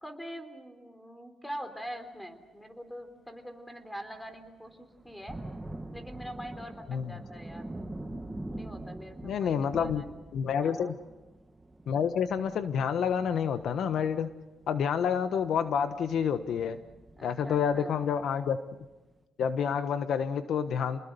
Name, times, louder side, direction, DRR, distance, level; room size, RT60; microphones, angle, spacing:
voice 1, 0.0-5.4 5.9-7.7 8.5-10.1 10.6-11.0 17.1-17.9, equal, 5° left, 8 dB, 3.8 m, -44 dB
sound 1, 4.3-4.4 5.0-18.4 18.8-18.9, right 1 dB, 10° right, 1.7 m, -45 dB
voice 2, 9.2-10.0 10.3-10.9 11.9-14.3 14.7-16.8 17.2-18.6 19.4-21.0, left 7 dB, 70° left, 10 dB, 1.2 m, -28 dB
29.5 x 20.5 x 6.8 m, 1.1 s
cardioid pair, 90°, 0 cm